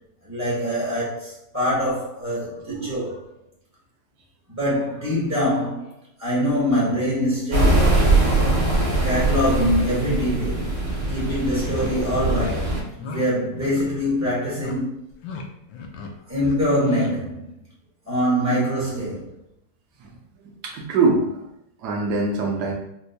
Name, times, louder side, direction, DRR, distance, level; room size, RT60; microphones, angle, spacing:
voice 1, 0.2-3.2 4.5-5.9 6.2-7.9 9.0-10.8 11.1-14.9 16.3-17.5 18.1-19.3, equal, 20° right, -8 dB, 0.4 m, -24 dB
sound 1, 7.5-12.8, right 2 dB, 40° right, 0.8 m, -21 dB
sound 2, 10.6-10.7 11.2-11.4 11.7-11.9 12.3-12.5 13.0-13.3 13.6-13.9 14.1-14.7 15.1-15.4 15.7-16.1 16.4-17.1, left 5 dB, 80° left, 1.3 m, -35 dB
voice 2, 20.6-21.4 21.8-22.7, right 3 dB, 70° right, 0 dB, 1.1 m, -23 dB
4.3 x 2.1 x 2.7 m, 0.80 s
omnidirectional pair, 2.1 m